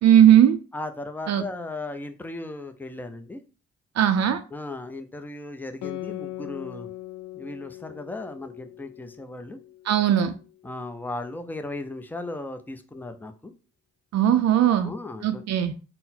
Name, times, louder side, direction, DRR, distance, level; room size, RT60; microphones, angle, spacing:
voice 1, 0.0-0.6 1.3-1.4 4.0-4.4 9.9-10.3 14.1-14.9 15.2-15.7, right 10 dB, 60° right, 0.4 m, -18 dB
voice 2, 0.7-3.4 4.5-6.9 7.3-9.6 10.6-13.5 14.8-15.4, left 2 dB, 5° left, 0.4 m, -36 dB
Guitar, 5.8-10.8, left 16 dB, 70° left, 0.5 m, -40 dB
3.8 x 2.0 x 4.2 m
cardioid pair, 90°, 30 cm